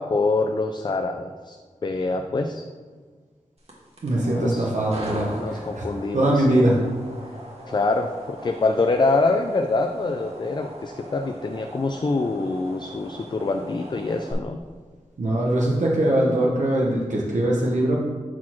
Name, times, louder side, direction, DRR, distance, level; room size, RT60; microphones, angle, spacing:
voice 1, 0.0-1.6 1.8-2.6 4.3-4.7 5.4-6.7 7.7-14.6, left 3 dB, 35° left, 6 dB, 0.4 m, -25 dB
sound 1, 3.6-14.3, right 1 dB, 50° right, 1.6 m, -40 dB
voice 2, 4.0-5.8 6.1-6.8 15.2-18.0, right 1 dB, 70° right, -4 dB, 0.9 m, -21 dB
4.5 x 4.2 x 5.8 m, 1.5 s
cardioid pair, 50°, 13 cm